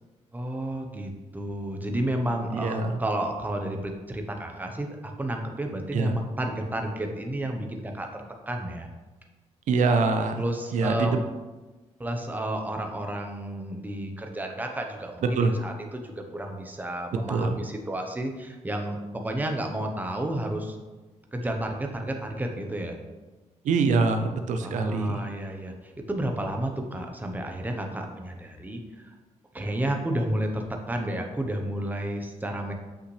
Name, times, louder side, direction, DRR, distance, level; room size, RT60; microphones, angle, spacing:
voice 1, 0.3-8.9 10.4-11.1 12.0-20.8 21.3-22.9 24.6-28.8 29.5-32.7, right 1 dB, 15° right, 3 dB, 1.0 m, -31 dB
voice 2, 2.5-3.0 5.9-6.1 9.7-10.4 10.7-11.2 15.4-15.6 17.3-17.6 23.6-25.2, right 4 dB, 80° right, 6 dB, 0.6 m, -24 dB
8.1 x 5.7 x 3.3 m, 1.2 s
cardioid pair, 100°, 13 cm